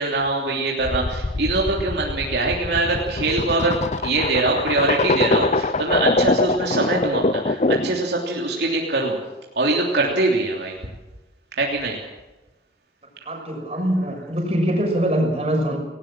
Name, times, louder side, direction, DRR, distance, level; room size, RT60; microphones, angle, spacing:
voice 1, 0.0-9.2 9.5-10.8 11.6-12.0, right 2 dB, 70° right, -2 dB, 3.2 m, -23 dB
sound 1, 0.8-8.0, left 3 dB, 40° left, 0.6 m, -23 dB
voice 2, 13.2-15.8, equal, 35° right, 1 dB, 6.2 m, -23 dB
19.0 x 19.0 x 7.5 m, 1.1 s
head